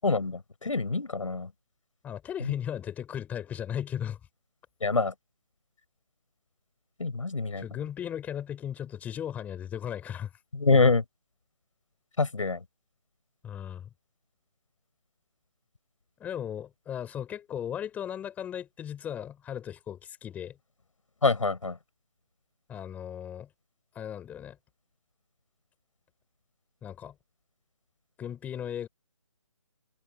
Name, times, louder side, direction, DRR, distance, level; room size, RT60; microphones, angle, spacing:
voice 1, 0.0-1.5 2.4-2.5 4.8-5.1 7.0-7.6 10.5-11.0 12.2-12.6 21.2-21.8, left 3 dB, 85° left, 6.6 m, -25 dB
voice 2, 2.0-4.2 7.6-10.3 13.4-13.9 16.2-20.6 22.7-23.5 23.9-24.6 26.8-27.1 28.2-28.9, left 9 dB, 10° left, 4.5 m, -36 dB
hypercardioid pair, 160°, 16 cm